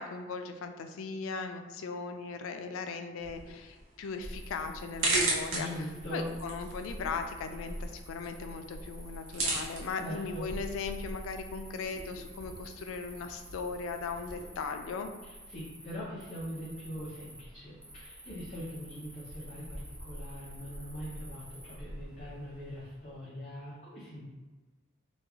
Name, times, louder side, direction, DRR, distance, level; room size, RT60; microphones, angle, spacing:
voice 1, 0.0-5.7 6.1-15.1, left 4 dB, 85° left, 7 dB, 0.3 m, -38 dB
sound 1, 3.2-14.4, right 2 dB, 80° right, 0.8 m, -38 dB
Cricket, 4.2-23.1, equal, 5° right, 0.4 m, -46 dB
voice 2, 5.5-6.3 10.0-10.5 15.2-24.2, equal, 35° left, -8 dB, 0.6 m, -42 dB
3.1 x 2.3 x 3.5 m, 1.3 s
head